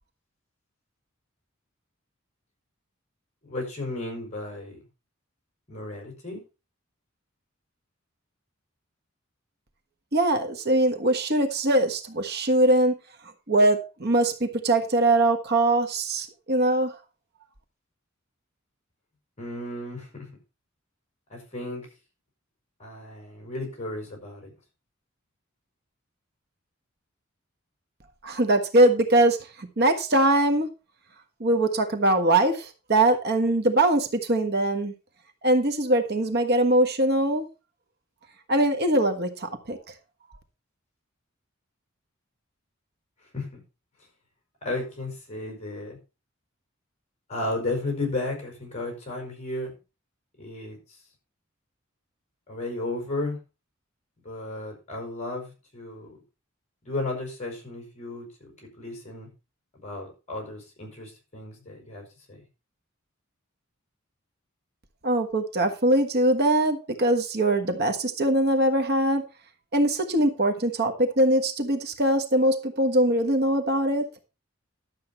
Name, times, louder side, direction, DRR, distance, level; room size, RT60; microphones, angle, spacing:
voice 1, 3.4-4.8 5.7-6.4 19.4-20.3 21.3-21.9 22.8-24.5 43.3-43.6 44.6-46.0 47.3-49.7 50.4-50.8 52.5-53.4 54.2-56.1 56.8-58.5 58.8-59.3 59.8-62.4, left 2 dB, 35° left, 2 dB, 5.3 m, -34 dB
voice 2, 10.1-12.9 13.5-17.0 28.2-30.7 31.4-34.9 35.4-37.5 38.5-39.8 65.0-69.2 69.7-74.1, right 1 dB, 50° right, 6 dB, 1.4 m, -22 dB
12.0 x 7.6 x 4.3 m, 0.29 s
head